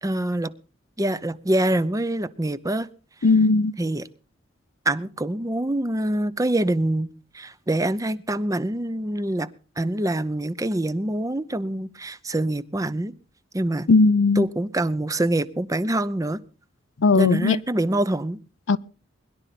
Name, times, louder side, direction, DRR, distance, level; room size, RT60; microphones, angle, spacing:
voice 1, 0.0-0.5 1.0-2.9 3.8-4.1 4.9-7.1 7.3-9.5 9.8-13.1 13.5-13.9 14.4-16.4 17.2-18.4, right 1 dB, 20° right, 0.6 m, -25 dB
voice 2, 3.2-3.7 13.9-14.5 17.0-17.6 18.7-18.8, left 3 dB, 85° left, 0.6 m, -17 dB
21.5 x 11.5 x 4.2 m
head